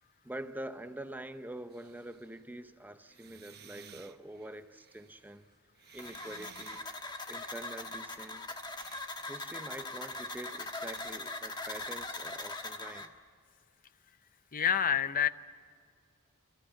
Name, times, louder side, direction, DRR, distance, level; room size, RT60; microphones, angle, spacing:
voice 1, 0.2-5.5 5.9-6.8 7.3-8.6 9.2-13.1, right 1 dB, 10° right, 0.6 m, -45 dB
sound 1, 1.7-2.4 3.1-8.1 8.7-9.0, right 7 dB, 45° right, 1.1 m, -56 dB
sound 2, 6.0-13.1, left 2 dB, 20° left, 1.3 m, -41 dB
voice 2, 14.5-15.3, left 8 dB, 40° left, 0.7 m, -27 dB
30.0 x 14.0 x 8.7 m
head